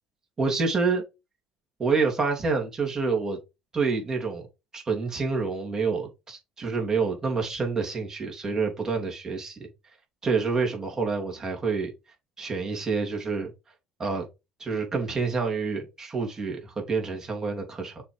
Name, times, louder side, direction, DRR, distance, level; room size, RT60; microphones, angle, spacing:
voice 1, 0.4-1.0 1.8-3.4 3.7-4.4 4.7-9.7 10.2-11.9 12.4-13.5 14.0-14.3 14.6-18.0, right 4 dB, 30° right, 3.0 m, -27 dB
6.6 x 3.5 x 4.9 m
supercardioid pair, 75°, 2 cm